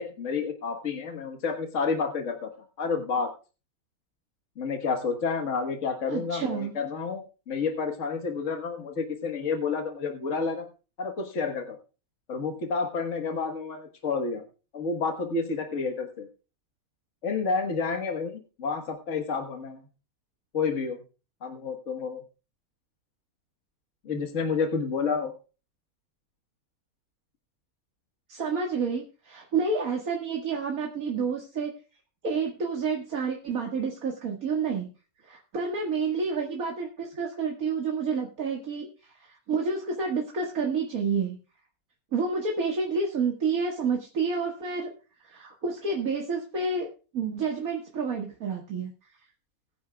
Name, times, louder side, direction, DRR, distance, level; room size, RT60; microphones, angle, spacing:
voice 1, 0.0-2.5 2.8-3.3 4.6-10.7 11.0-11.8 12.3-14.4 14.7-16.3 17.2-19.8 20.5-21.0 21.4-22.2 24.1-25.3, left 5 dB, 60° left, 3 dB, 1.8 m, -30 dB
voice 2, 6.1-6.7 28.3-31.7 32.2-34.9 35.2-41.4 42.1-44.9 45.2-46.9 47.1-48.9, right 4 dB, 80° right, 0 dB, 2.3 m, -29 dB
20.5 x 10.0 x 2.3 m, 0.34 s
omnidirectional pair, 1.5 m